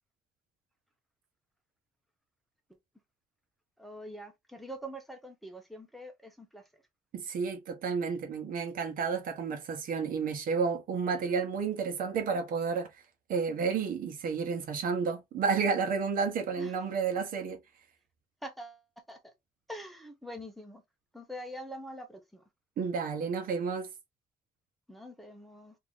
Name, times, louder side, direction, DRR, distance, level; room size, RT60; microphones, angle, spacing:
voice 1, 3.8-6.6 16.6-16.7 18.4-18.8 19.1-19.2 19.7-20.8 21.1-22.4 24.9-25.7, equal, ahead, 1.0 m, -44 dB
voice 2, 7.1-12.9 13.3-17.6 22.8-23.9, right 5 dB, 75° right, 1.1 m, -31 dB
3.0 x 2.9 x 3.8 m
cardioid pair, 110°, 15 cm